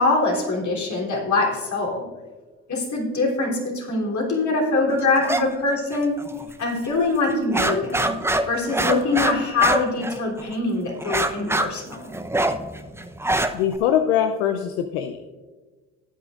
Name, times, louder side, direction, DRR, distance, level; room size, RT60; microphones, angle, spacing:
voice 1, 0.0-2.0 2.7-6.2 6.6-8.1 8.5-12.1, left 3 dB, 50° left, -1 dB, 3.4 m, -23 dB
sound 1, 5.2-5.4 5.7-6.5 6.8-6.9 7.3-10.5 11.0-13.8, right 1 dB, 5° right, 0.7 m, -24 dB
voice 2, 13.5-15.3, left 9 dB, 80° left, 7 dB, 0.6 m, -22 dB
16.5 x 8.9 x 2.5 m, 1.4 s
hypercardioid pair, 55°, 37 cm